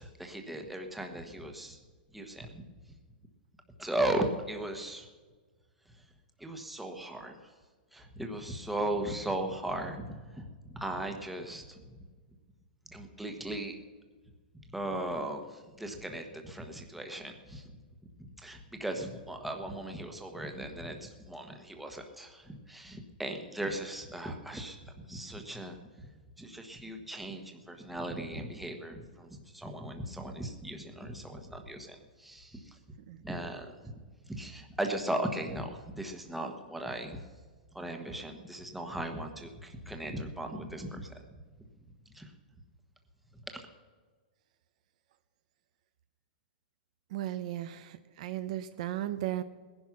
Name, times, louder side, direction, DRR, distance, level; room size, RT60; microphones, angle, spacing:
voice 1, 0.0-1.8 2.1-2.6 3.8-5.1 6.4-7.4 7.9-11.8 12.9-13.7 14.7-17.6 18.4-24.8 25.1-25.8 26.4-32.7 33.2-33.9 34.3-37.2 37.7-41.1 42.1-42.3, right 1 dB, ahead, 4 dB, 1.2 m, -37 dB
voice 2, 47.1-49.4, right 13 dB, 45° right, 11 dB, 0.7 m, -35 dB
18.0 x 11.0 x 5.9 m, 1.5 s
hypercardioid pair, 165°, 5 cm